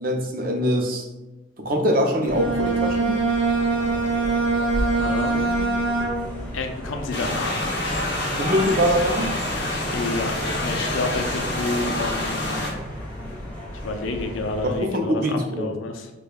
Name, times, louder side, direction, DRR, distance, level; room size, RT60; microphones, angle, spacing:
voice 1, 0.0-1.1 1.6-3.1 8.4-9.3 14.8-15.7, equal, 45° right, 3 dB, 0.5 m, -23 dB
sound 1, 2.2-14.8, equal, 10° left, 0.9 m, -34 dB
Bowed string instrument, 2.3-6.5, right 3 dB, 80° right, 0.7 m, -23 dB
voice 2, 5.0-5.7 6.5-7.8 9.9-10.3 10.6-12.7 13.7-16.1, left 3 dB, 85° left, 5 dB, 0.5 m, -30 dB
sound 2, 7.1-12.7, left 1 dB, 55° left, 1.0 m, -27 dB
6.5 x 2.2 x 2.3 m, 1.1 s
head